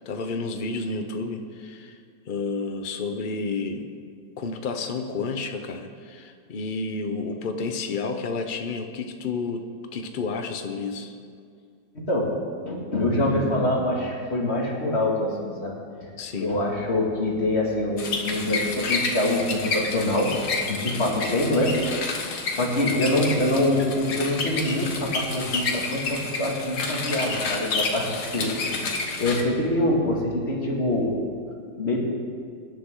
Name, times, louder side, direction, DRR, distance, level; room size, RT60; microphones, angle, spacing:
voice 1, 0.1-2.0 2.3-3.9 4.4-11.2 16.2-16.5 28.4-28.6, left 4 dB, 75° left, 6 dB, 0.4 m, -31 dB
voice 2, 11.9-12.3 12.7-15.8 16.4-20.3 20.7-22.1 22.5-28.5 29.2-31.1 31.8-32.0, left 1 dB, 35° left, -2 dB, 2.4 m, -25 dB
Antique Manual Coffee Grinder, 18.0-29.4, left 3 dB, 55° left, 1.8 m, -29 dB
23.0 x 10.5 x 3.8 m, 2.2 s
omnidirectional pair, 2.1 m